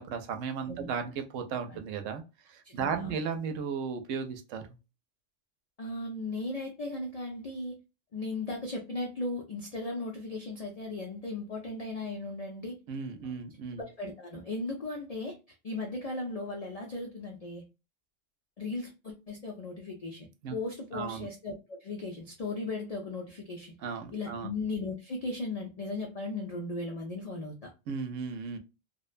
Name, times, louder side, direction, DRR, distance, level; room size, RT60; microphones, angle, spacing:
voice 1, 0.0-4.8 12.9-13.9 20.4-20.6 20.9-21.3 23.8-24.5 27.9-28.6, right 6 dB, 80° right, 7 dB, 0.9 m, -35 dB
voice 2, 2.6-3.2 5.8-7.8 8.1-12.8 13.8-15.4 15.6-17.6 18.6-23.7 24.1-27.7, left 2 dB, 70° left, 1 dB, 0.3 m, -37 dB
2.7 x 2.1 x 2.3 m, 0.28 s
omnidirectional pair, 1.3 m